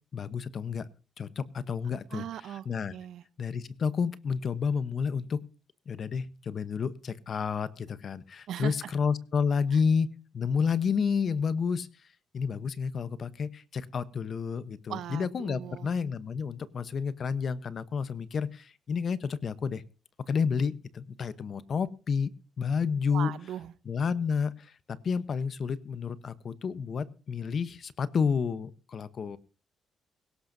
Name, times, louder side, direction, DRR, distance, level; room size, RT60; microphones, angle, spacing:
voice 1, 0.1-0.9 1.2-2.9 3.4-5.4 5.9-10.1 10.3-11.9 12.3-19.8 20.3-22.3 22.6-23.3 23.8-29.4, left 6 dB, 50° left, 16 dB, 0.9 m, -30 dB
voice 2, 2.1-2.7 2.9-3.2 8.5-8.9 14.9-15.9 23.1-23.7, right 11 dB, 75° right, 16 dB, 0.8 m, -38 dB
17.5 x 17.0 x 2.7 m, 0.34 s
cardioid pair, 90°, 0 cm